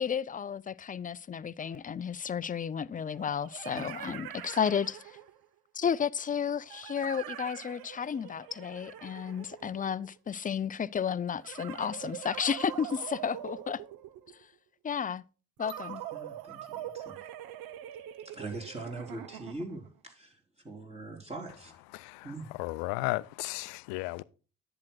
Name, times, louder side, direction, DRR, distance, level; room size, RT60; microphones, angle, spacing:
voice 1, 0.0-5.2 5.7-13.8 14.8-15.2 15.6-16.0, left 7 dB, 20° left, 0.4 m, -32 dB
sound 1, 1.6-1.7 3.1-5.5 6.7-10.2 11.4-14.4 15.6-19.9, right 12 dB, 70° right, 0.9 m, -44 dB
voice 2, 3.7-4.2 16.1-17.2 18.2-20.4 20.6-21.8 22.2-22.5, right 2 dB, 15° right, 3.9 m, -42 dB
voice 3, 21.9-24.2, left 21 dB, 75° left, 0.5 m, -35 dB
10.5 x 8.9 x 2.3 m
hypercardioid pair, 50°, 37 cm